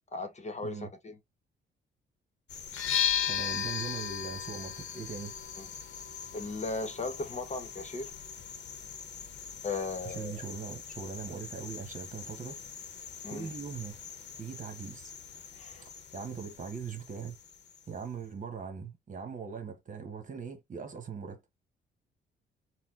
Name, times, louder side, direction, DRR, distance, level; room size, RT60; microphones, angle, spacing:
voice 1, 0.1-1.2 5.6-5.7 6.3-8.1 9.6-10.4 13.2-13.5 15.5-15.9, left 3 dB, 35° left, 1.2 m, -37 dB
sound 1, 2.5-18.2, left 7 dB, 60° left, 0.9 m, -46 dB
sound 2, 2.7-10.4, left 9 dB, 90° left, 0.9 m, -36 dB
voice 2, 3.2-5.3 10.0-12.6 13.3-14.0 14.4-15.1 15.8-17.4 17.9-21.4, right 6 dB, 40° right, 1.3 m, -40 dB
4.2 x 2.3 x 3.8 m
cardioid pair, 90°, 20 cm